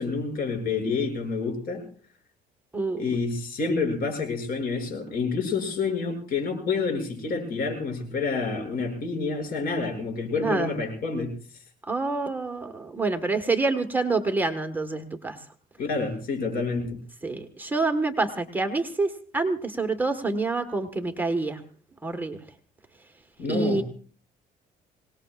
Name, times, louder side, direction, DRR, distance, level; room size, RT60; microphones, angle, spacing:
voice 1, 0.0-1.8 3.0-11.4 15.8-17.0 23.4-23.8, left 4 dB, 60° left, 3 dB, 7.1 m, -28 dB
voice 2, 10.4-10.7 11.8-15.4 17.2-21.6 22.0-22.4 23.5-23.8, right 3 dB, 10° right, 4 dB, 1.6 m, -27 dB
26.0 x 19.0 x 2.5 m, 0.42 s
cardioid pair, 110°, 17 cm